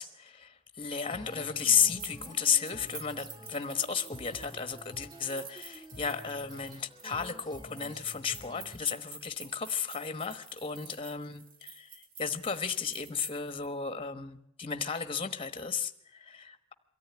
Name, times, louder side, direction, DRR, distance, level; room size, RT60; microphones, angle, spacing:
voice 1, 0.0-16.7, left 7 dB, 25° left, 10 dB, 1.1 m, -33 dB
Female singing, 1.0-8.8, equal, 20° right, 2.0 m, -49 dB
sound 1, 1.6-13.7, right 5 dB, 45° right, 2.4 m, -50 dB
23.0 x 14.0 x 9.4 m, 0.77 s
head